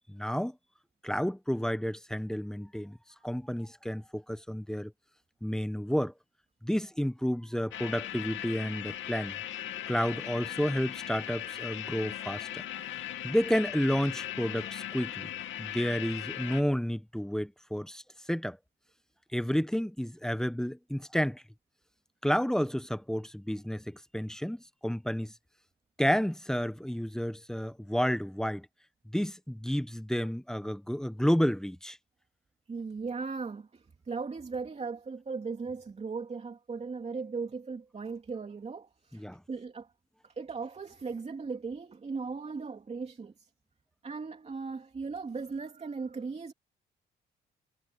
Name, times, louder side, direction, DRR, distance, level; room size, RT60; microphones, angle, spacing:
voice 1, 0.1-0.6 1.0-3.0 3.2-4.9 5.4-6.1 6.6-9.4 9.9-12.6 13.2-15.3 15.6-18.0 18.3-18.6 19.3-21.4 22.2-25.3 26.0-28.7 29.1-32.0 39.1-39.4, equal, 5° left, 1.1 m, -31 dB
sound 1, 7.7-16.6, left 12 dB, 75° left, 2.5 m, -38 dB
voice 2, 32.7-39.9 40.2-43.5 44.0-46.5, right 4 dB, 35° right, 2.9 m, -38 dB
cardioid pair, 90°, 20 cm